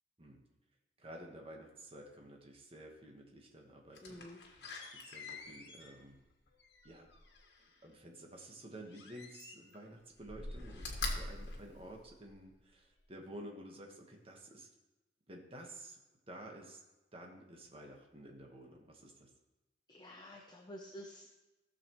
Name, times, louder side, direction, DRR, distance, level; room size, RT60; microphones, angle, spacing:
voice 1, 1.0-6.2 6.8-7.1 7.8-14.7 15.3-16.0 16.3-16.8 17.1-19.3, right 1 dB, 35° right, 0 dB, 1.4 m, -52 dB
Slam, 3.9-7.8 8.9-9.8 10.2-12.5 13.0-13.1, left 2 dB, 80° left, 1.5 m, -45 dB
voice 2, 4.0-4.4 19.9-21.3, equal, 25° left, 1 dB, 0.7 m, -50 dB
15.5 x 6.8 x 3.1 m, 1.1 s
head